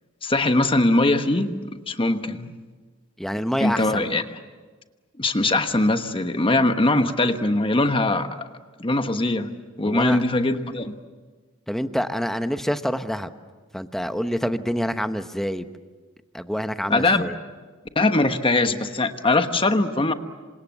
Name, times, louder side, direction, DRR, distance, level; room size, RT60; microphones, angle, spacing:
voice 1, 0.2-1.5 1.9-2.5 3.6-4.2 5.2-8.3 8.8-9.5 9.8-11.0 16.9-17.3 17.9-20.1, left 2 dB, 25° left, 8 dB, 1.2 m, -21 dB
voice 2, 3.2-4.1 9.8-10.2 11.7-13.3 13.7-15.7 16.3-17.3, equal, ahead, 9 dB, 1.0 m, -27 dB
28.0 x 26.0 x 7.3 m, 1.4 s
head